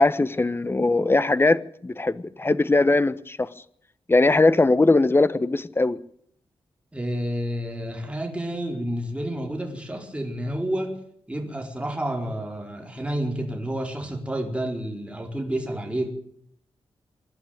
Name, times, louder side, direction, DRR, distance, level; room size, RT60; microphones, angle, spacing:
voice 1, 0.0-3.5 4.1-6.0, left 2 dB, 25° left, 1.2 m, -20 dB
voice 2, 6.9-11.0 11.3-16.1, right 1 dB, 10° right, 4.4 m, -30 dB
24.5 x 12.0 x 9.0 m
wide cardioid pair, 110°, 10 cm